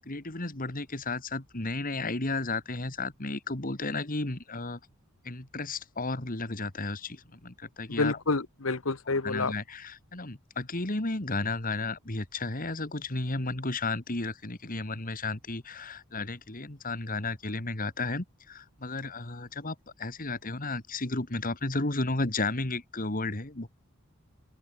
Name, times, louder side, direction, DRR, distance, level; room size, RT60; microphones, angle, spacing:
voice 1, 0.1-4.8 5.2-8.2 9.2-23.7, left 3 dB, 40° left, 2.4 m, -33 dB
voice 2, 8.0-9.5, left 3 dB, 70° left, 1.3 m, -28 dB
open air
head